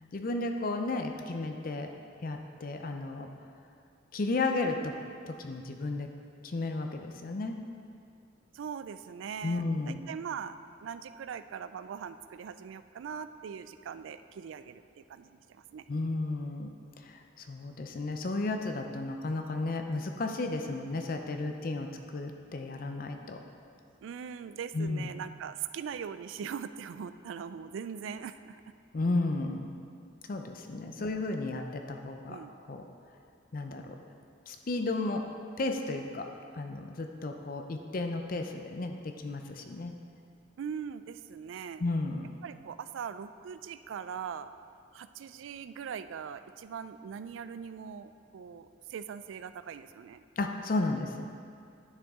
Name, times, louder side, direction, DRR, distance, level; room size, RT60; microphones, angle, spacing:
voice 1, 0.1-1.9 2.2-3.3 4.1-5.0 5.3-6.1 6.4-7.6 9.4-10.0 15.9-16.7 17.0-23.4 24.7-25.1 28.9-29.7 30.3-32.4 32.7-32.8 33.5-34.0 34.5-35.2 35.6-36.3 36.5-39.9 41.8-42.3 50.4-51.3, left 2 dB, 45° left, 5 dB, 0.5 m, -33 dB
voice 2, 8.5-10.6 10.8-15.8 24.0-28.6 31.0-31.1 32.3-32.5 40.6-41.8 42.4-44.5 44.9-50.2, right 7 dB, 80° right, 12 dB, 0.3 m, -41 dB
9.8 x 6.3 x 3.6 m, 2.3 s
head